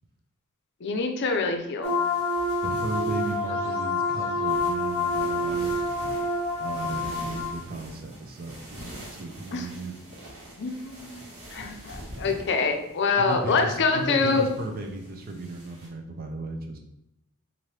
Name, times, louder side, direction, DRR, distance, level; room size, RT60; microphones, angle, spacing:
voice 1, 0.8-2.0 9.5-9.7 10.6-14.5, left 4 dB, 55° left, 5 dB, 0.5 m, -26 dB
sound 1, 1.8-7.5, left 2 dB, 15° left, 1.0 m, -27 dB
sound 2, 1.8-15.9, equal, 65° right, 1.4 m, -45 dB
voice 2, 2.6-5.8 6.6-9.9 13.2-16.8, right 2 dB, 45° right, 3 dB, 0.5 m, -35 dB
4.2 x 2.6 x 3.2 m, 0.83 s
head